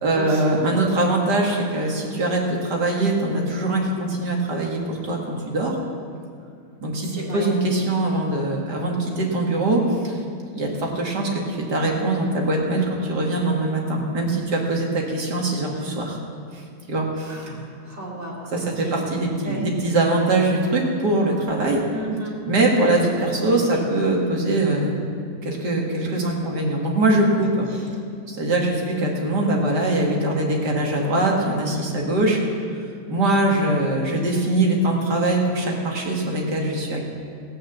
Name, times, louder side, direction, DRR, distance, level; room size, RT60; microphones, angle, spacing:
voice 1, 0.0-5.7 6.8-10.2 10.5-16.2 16.5-16.6 16.9-17.6 18.5-21.8 22.5-25.0 25.4-27.7 28.3-32.4 33.1-37.1, right 2 dB, 85° right, -1 dB, 2.6 m, -22 dB
voice 2, 7.2-7.5 17.3-19.0 19.4-19.6 21.9-22.3 23.7-23.8, right 2 dB, 45° right, -4 dB, 3.1 m, -33 dB
15.5 x 9.0 x 7.0 m, 2.4 s
omnidirectional pair, 1.7 m